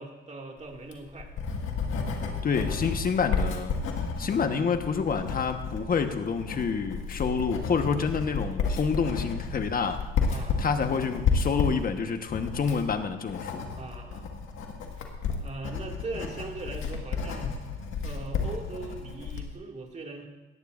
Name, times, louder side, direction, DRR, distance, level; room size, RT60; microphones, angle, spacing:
voice 1, 0.0-1.3 10.3-10.6 13.8-14.3 15.4-17.6 18.0-20.3, right 2 dB, 35° right, 1 dB, 2.3 m, -40 dB
Writing, 0.7-19.5, left 5 dB, 85° left, 1.8 m, -32 dB
voice 2, 2.4-3.7 4.2-10.0 10.6-13.7, left 5 dB, 45° left, 7 dB, 1.3 m, -28 dB
18.0 x 14.0 x 2.6 m, 1.2 s
cardioid pair, 90°, 20 cm